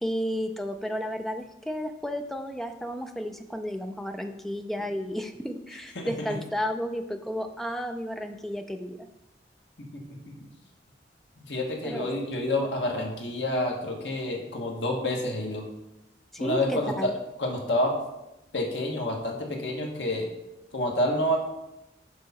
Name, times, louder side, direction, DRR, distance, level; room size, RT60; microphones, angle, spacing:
voice 1, 0.0-9.1 11.8-12.1 16.3-17.1, equal, ahead, 6 dB, 0.3 m, -32 dB
voice 2, 11.4-15.6 16.4-17.1 17.4-17.9 18.5-20.3 20.7-21.4, left 1 dB, 80° left, 1 dB, 1.3 m, -28 dB
6.3 x 4.7 x 4.1 m, 0.92 s
head